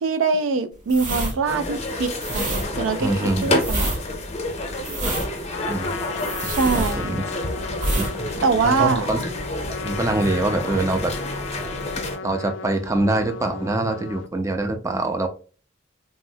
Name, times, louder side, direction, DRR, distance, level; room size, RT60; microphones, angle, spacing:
voice 1, 0.0-2.4 2.8-3.9 6.4-7.1 8.4-9.1, right 4 dB, 85° right, 11 dB, 0.4 m, -23 dB
sound 1, 0.9-7.4 7.7-8.1 8.4-8.6, right 1 dB, 45° right, 0.8 m, -27 dB
sound 2, 1.5-12.2, left 2 dB, 35° left, 0.6 m, -29 dB
voice 2, 3.0-3.5 5.0-5.3 5.7-6.0 6.4-7.2 8.0-9.2 9.8-11.1 12.2-15.3, right 2 dB, 15° right, 5 dB, 0.4 m, -24 dB
Trumpet, 5.5-14.3, left 4 dB, 70° left, 0.3 m, -35 dB
3.6 x 2.0 x 2.6 m, 0.37 s
head